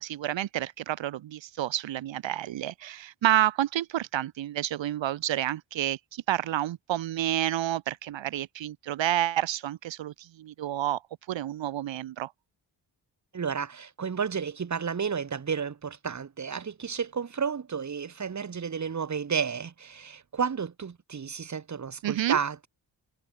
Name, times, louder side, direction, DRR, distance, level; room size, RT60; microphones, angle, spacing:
voice 1, 0.0-11.0 11.3-12.3 22.0-22.4, right 12 dB, 90° right, 1.0 m, -29 dB
voice 2, 13.3-22.7, right 6 dB, 40° right, 1.6 m, -32 dB
cardioid pair, 95°, 44 cm